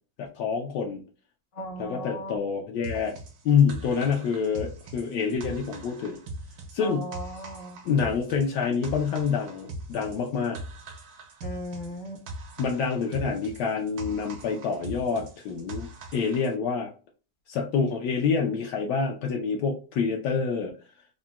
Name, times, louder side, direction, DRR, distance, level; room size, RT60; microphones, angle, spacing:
voice 1, 0.2-1.0 1.8-3.1 3.4-6.2 6.7-7.0 7.8-10.6 12.6-16.9 17.5-20.7, left 6 dB, 75° left, 1 dB, 1.1 m, -27 dB
voice 2, 1.5-2.4 6.8-7.8 11.4-12.2, equal, 45° left, -1 dB, 0.5 m, -37 dB
sound 1, 2.8-16.5, right 2 dB, 65° right, 1.1 m, -41 dB
3.8 x 2.1 x 2.2 m, 0.36 s
omnidirectional pair, 1.9 m